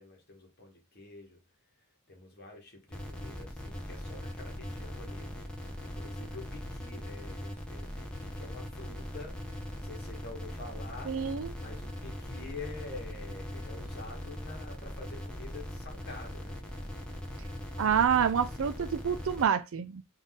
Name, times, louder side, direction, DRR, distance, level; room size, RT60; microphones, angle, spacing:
voice 1, 0.0-1.4 2.1-5.4 5.8-9.4 9.7-11.1 11.6-16.6, left 3 dB, 45° left, 1.4 m, -47 dB
sound 1, 2.9-19.4, equal, 5° left, 0.8 m, -40 dB
voice 2, 11.0-11.5 17.8-20.0, right 7 dB, 65° right, 0.4 m, -27 dB
3.9 x 2.7 x 3.6 m
head